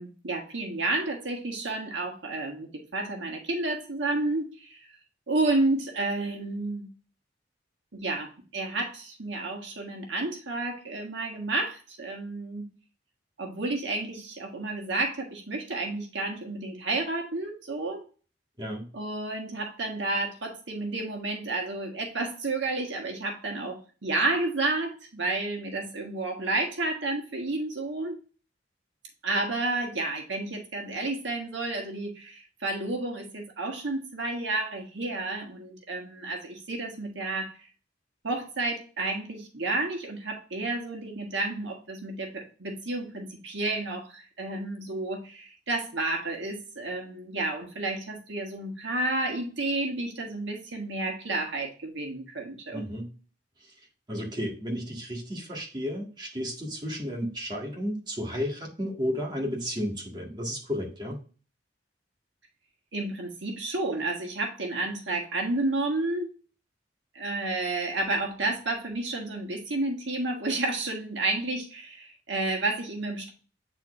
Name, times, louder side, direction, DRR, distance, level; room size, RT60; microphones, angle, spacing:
voice 1, 0.0-4.8 5.3-6.9 7.9-12.7 13.4-18.0 18.9-28.2 29.2-37.5 38.2-52.9 62.9-66.3 67.1-73.3, right 2 dB, 80° right, 2 dB, 1.6 m, -31 dB
voice 2, 18.6-18.9 52.7-53.1 54.1-61.2, equal, 25° right, -2 dB, 1.9 m, -33 dB
8.9 x 4.2 x 2.6 m, 0.36 s
head